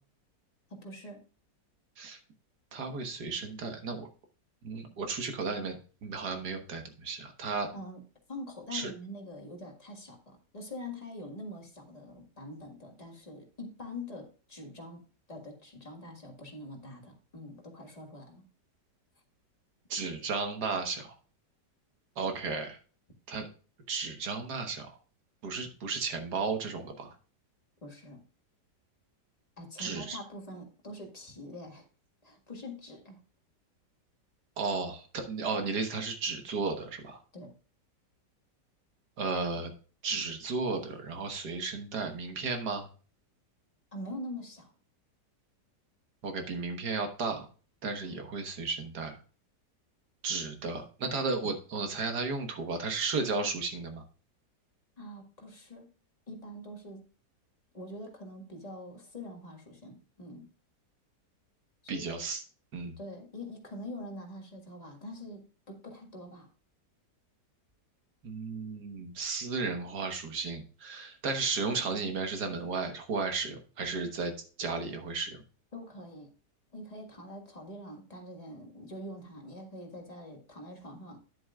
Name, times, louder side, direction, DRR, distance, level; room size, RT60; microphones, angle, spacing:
voice 1, 0.7-1.2 7.7-8.0 8.3-15.0 15.3-18.4 27.8-28.2 29.6-31.9 32.2-33.2 37.3-37.5 43.9-44.7 48.0-48.2 55.0-55.9 56.3-57.0 57.7-60.5 61.8-62.1 63.0-66.5 75.7-76.3 76.7-81.2, left 1 dB, 20° left, 1 dB, 1.7 m, -44 dB
voice 2, 2.7-4.1 4.6-7.7 8.7-8.9 19.9-21.1 22.2-22.8 23.3-23.5 23.9-25.0 25.4-27.1 29.8-30.2 34.6-37.2 39.2-39.7 40.0-42.9 46.2-47.5 47.8-49.2 50.2-54.0 61.9-62.4 62.7-63.0 68.2-74.3 74.6-75.4, right 4 dB, 65° right, 5 dB, 1.8 m, -34 dB
10.0 x 7.9 x 2.3 m, 0.37 s
omnidirectional pair, 1.9 m